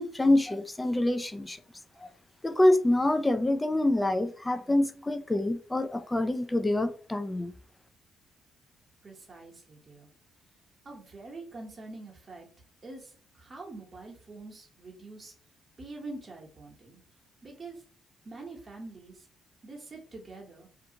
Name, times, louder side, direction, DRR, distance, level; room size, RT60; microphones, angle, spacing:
voice 1, 0.0-1.6 2.0-2.1 2.4-7.5, left 1 dB, 15° left, 0.4 m, -26 dB
voice 2, 9.0-10.1 10.8-12.5 12.8-15.3 15.8-17.0 17.4-17.8 18.2-19.3 19.6-20.7, right 2 dB, 40° right, 0.9 m, -45 dB
2.5 x 2.2 x 2.8 m
supercardioid pair, 60°, 0 cm